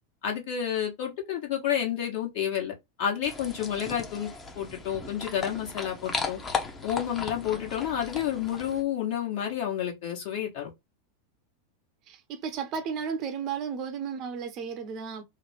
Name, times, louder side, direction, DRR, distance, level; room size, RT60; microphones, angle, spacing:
voice 1, 0.2-4.3 4.5-6.4 6.8-10.7, left 9 dB, 55° left, 1.2 m, -30 dB
sound 1, 3.2-8.8, left 4 dB, 20° left, 0.8 m, -36 dB
voice 2, 12.1-15.2, right 6 dB, 40° right, 0.7 m, -34 dB
3.1 x 2.1 x 3.2 m
figure-of-eight pair, 90°, 0 cm